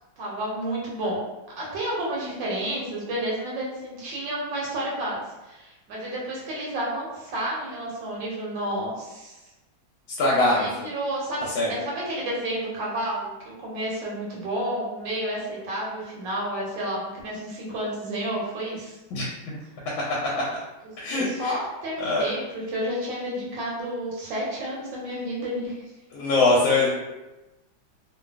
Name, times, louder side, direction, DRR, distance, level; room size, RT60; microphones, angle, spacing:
voice 1, 0.2-1.2 1.6-9.4 10.5-11.4 11.7-13.3 13.6-19.0 21.1-25.8, right 1 dB, 70° right, -5 dB, 1.3 m, -30 dB
voice 2, 10.2-10.9 11.5-11.7 19.1-19.3 21.0-21.5 22.0-22.3 26.1-26.9, left 2 dB, 80° left, -5 dB, 1.3 m, -22 dB
3.2 x 2.2 x 2.3 m, 1.0 s
omnidirectional pair, 2.2 m